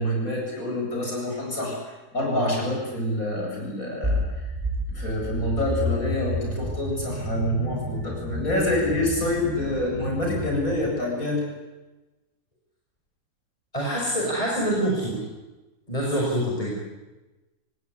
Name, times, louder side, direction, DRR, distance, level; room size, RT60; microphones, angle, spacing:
voice 1, 0.0-1.8 2.1-4.5 4.9-11.4, left 1 dB, 55° left, -1 dB, 8.7 m, -27 dB
sound 1, 4.0-10.9, left 1 dB, 20° right, 4.7 m, -30 dB
voice 2, 13.7-15.2 15.9-16.7, right 1 dB, 20° left, -4 dB, 6.3 m, -25 dB
28.0 x 18.5 x 9.7 m, 1.1 s
omnidirectional pair, 1.7 m